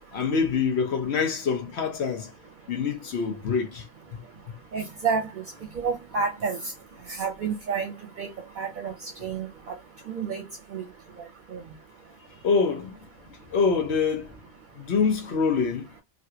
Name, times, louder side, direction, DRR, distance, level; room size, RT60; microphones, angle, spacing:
voice 1, 0.1-2.3 2.7-3.8 4.1-4.2 12.4-13.0 13.5-14.4 14.8-15.9, left 5 dB, 65° left, 1.0 m, -25 dB
voice 2, 4.7-5.3 5.8-6.6 7.2-7.9 8.2-8.3 8.6-8.9 9.2-9.5 10.1-10.4 10.7-10.8 11.5-11.6, right 5 dB, 50° right, 0.7 m, -28 dB
3.2 x 2.5 x 2.7 m
omnidirectional pair, 1.2 m